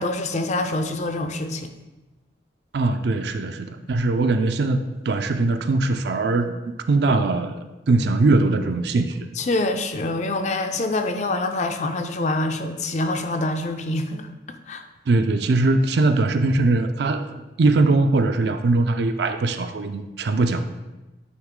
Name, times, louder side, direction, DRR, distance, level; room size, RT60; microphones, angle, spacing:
voice 1, 0.0-1.7 9.4-14.8, left 2 dB, 40° left, 7 dB, 0.4 m, -26 dB
voice 2, 2.7-7.6 7.9-9.2 15.1-17.2 17.6-20.6, right 3 dB, 65° right, 8 dB, 0.4 m, -21 dB
9.2 x 3.1 x 3.7 m, 1.1 s
head